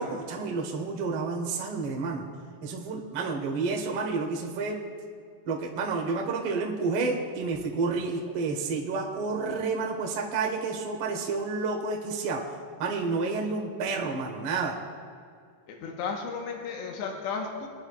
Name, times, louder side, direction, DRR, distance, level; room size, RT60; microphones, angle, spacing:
voice 1, 0.0-2.3 2.6-4.8 5.4-12.4 12.8-14.8, right 4 dB, 80° right, -1 dB, 1.2 m, -30 dB
voice 2, 15.7-17.7, left 5 dB, 80° left, 0 dB, 3.3 m, -34 dB
23.5 x 9.9 x 2.5 m, 2.2 s
omnidirectional pair, 5.1 m